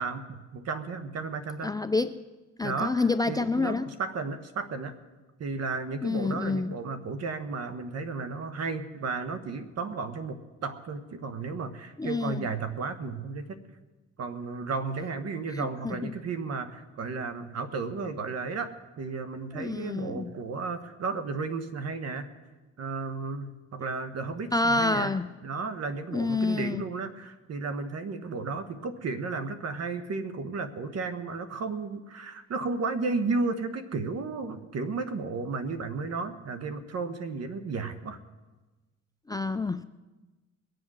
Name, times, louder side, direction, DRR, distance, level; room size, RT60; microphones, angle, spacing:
voice 1, 0.0-1.7 2.6-4.9 5.4-13.6 14.2-18.7 19.0-22.3 22.8-25.1 25.4-38.2, right 4 dB, 55° right, 10 dB, 1.3 m, -33 dB
voice 2, 1.6-2.2 2.6-3.9 6.0-6.7 12.0-12.5 15.5-16.1 19.5-20.3 24.5-25.3 26.1-26.8 39.3-39.8, left 3 dB, 15° left, 11 dB, 0.4 m, -28 dB
21.5 x 7.8 x 6.3 m, 1.2 s
cardioid pair, 90°, 30 cm